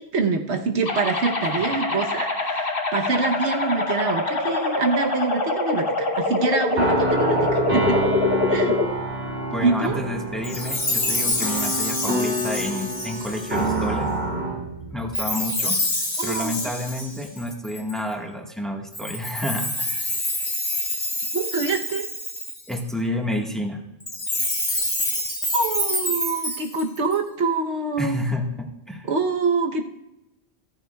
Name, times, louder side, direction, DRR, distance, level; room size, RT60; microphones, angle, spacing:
voice 1, 0.0-8.0 8.5-8.8 9.6-10.0 16.2-16.7 21.3-22.1 25.5-28.2 29.0-29.8, right 4 dB, 80° right, 4 dB, 1.2 m, -25 dB
sound 1, 0.9-8.9, left 2 dB, 55° left, 1.6 m, -24 dB
sound 2, 6.7-15.2, right 1 dB, 55° right, 2.7 m, -27 dB
voice 2, 9.5-14.1 14.9-15.8 16.2-20.1 22.7-23.8 28.0-29.1, left 1 dB, ahead, 0 dB, 1.4 m, -29 dB
Chime, 10.4-13.8 15.1-18.0 18.9-22.7 24.0-27.1, left 1 dB, 25° left, 1.4 m, -27 dB
14.5 x 14.0 x 2.3 m, 0.89 s
omnidirectional pair, 1.1 m